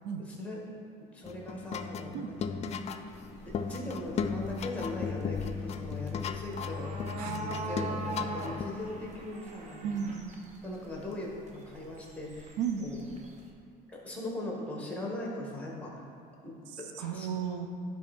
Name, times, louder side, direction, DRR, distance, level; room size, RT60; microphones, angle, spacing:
voice 1, 0.2-0.6 1.1-2.4 3.3-9.8 10.6-13.0 13.9-16.0 16.4-16.6 17.0-17.3, left 2 dB, 5° left, -2 dB, 1.8 m, -40 dB
sound 1, 1.2-8.7, left 5 dB, 35° left, 0.4 m, -36 dB
sound 2, 3.1-13.5, right 3 dB, 40° right, 1.0 m, -43 dB
voice 2, 9.8-10.3 12.6-12.9 16.7-17.7, right 7 dB, 90° right, 6 dB, 0.6 m, -34 dB
10.5 x 3.5 x 4.3 m, 2.3 s
supercardioid pair, 105°, 19 cm